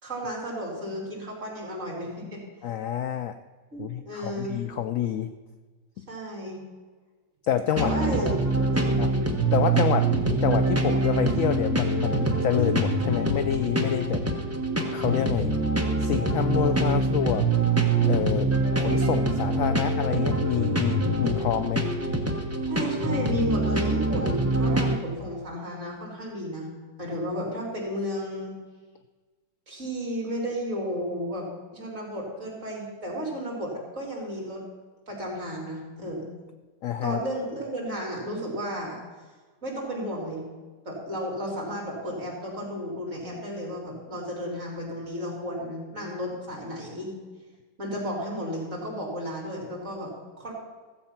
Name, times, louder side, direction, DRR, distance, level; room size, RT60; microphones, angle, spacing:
voice 1, 0.0-2.4 3.7-4.6 6.1-6.6 7.8-8.3 8.7-9.0 22.7-26.7 27.0-28.6 29.7-34.6 35.1-36.3 37.0-39.0 39.6-40.4 40.9-47.1 47.8-50.5, equal, 40° right, -3 dB, 3.9 m, -33 dB
voice 2, 2.6-3.4 3.8-5.3 7.5-7.9 9.0-9.1 9.5-10.1 10.4-14.2 14.9-15.5 16.0-17.5 18.0-18.5 18.8-21.8 36.8-37.2, left 9 dB, 75° left, 9 dB, 0.7 m, -27 dB
sound 1, 7.8-25.0, right 2 dB, 10° right, 0.9 m, -25 dB
15.0 x 7.8 x 5.8 m, 1.4 s
omnidirectional pair, 2.0 m